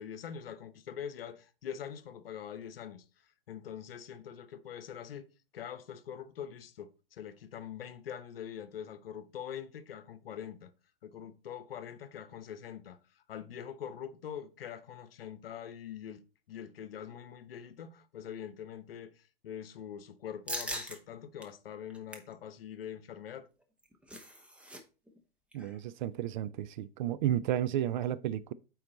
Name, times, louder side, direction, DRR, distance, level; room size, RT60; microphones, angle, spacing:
voice 1, 0.0-3.0 3.5-5.3 5.5-10.7 11.0-13.0 13.3-16.2 16.5-23.5, left 9 dB, 65° left, 0.9 m, -44 dB
sound 1, 20.5-21.0 21.4-21.5 21.9-22.3 23.6-24.8 25.1-25.2 25.5-25.8, equal, 5° right, 1.0 m, -40 dB
voice 2, 25.5-28.5, right 11 dB, 50° right, 0.5 m, -32 dB
8.6 x 4.2 x 4.0 m
figure-of-eight pair, 105°, 31 cm